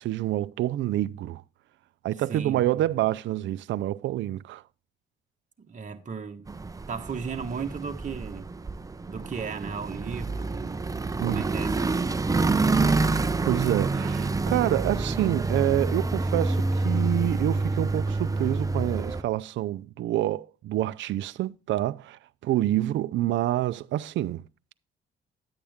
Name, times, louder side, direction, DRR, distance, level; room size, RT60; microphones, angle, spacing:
voice 1, 0.0-1.4 2.0-4.6 11.2-11.4 13.4-24.5, right 14 dB, 70° right, 0.4 m, -27 dB
voice 2, 2.2-2.8 5.6-6.5 6.9-8.5 9.1-10.8 11.2-11.8, right 5 dB, 40° right, 1.4 m, -35 dB
sound 1, 6.5-19.2, right 3 dB, 15° right, 0.6 m, -27 dB
10.5 x 8.6 x 3.5 m
cardioid pair, 90°, 20 cm